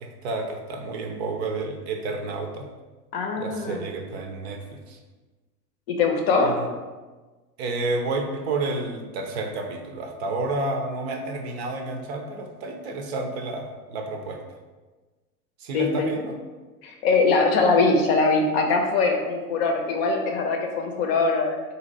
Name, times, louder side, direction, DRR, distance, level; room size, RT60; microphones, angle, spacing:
voice 1, 0.0-2.7 3.4-5.0 6.4-6.7 7.6-14.4 15.6-16.3, right 2 dB, 45° right, 4 dB, 0.6 m, -30 dB
voice 2, 3.1-3.9 5.9-6.5 15.7-16.1 16.8-21.6, left 3 dB, 40° left, 3 dB, 0.7 m, -22 dB
4.2 x 2.8 x 3.9 m, 1.3 s
figure-of-eight pair, 95°, 46 cm